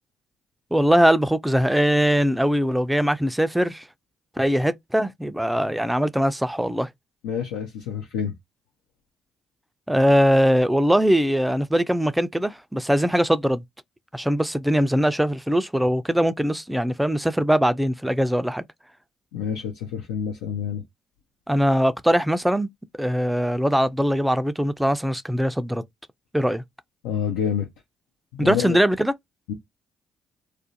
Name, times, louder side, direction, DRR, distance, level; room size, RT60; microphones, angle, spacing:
voice 1, 0.7-3.8 4.4-6.9 9.9-13.6 14.1-18.6 21.5-22.7 23.0-25.8 26.3-26.6 28.4-29.1, equal, 5° right, 0.4 m, -21 dB
voice 2, 7.2-8.3 19.3-20.8 27.0-27.7 28.3-28.8 29.5-29.6, left 8 dB, 80° left, 0.4 m, -28 dB
2.4 x 2.1 x 2.6 m
hypercardioid pair, 50°, 0 cm